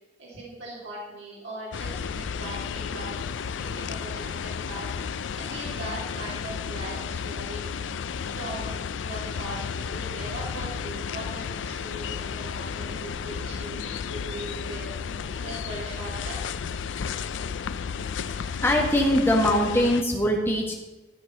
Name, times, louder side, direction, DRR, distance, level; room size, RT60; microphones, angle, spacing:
voice 1, 0.2-3.2 3.6-4.9 5.4-7.7 8.3-16.4, right 1 dB, 85° right, -6 dB, 2.9 m, -40 dB
sound 1, 1.7-20.0, left 6 dB, 85° left, 0.4 m, -33 dB
voice 2, 18.2-20.7, left 1 dB, 15° left, 0 dB, 1.6 m, -22 dB
13.5 x 6.1 x 5.4 m, 1.1 s
head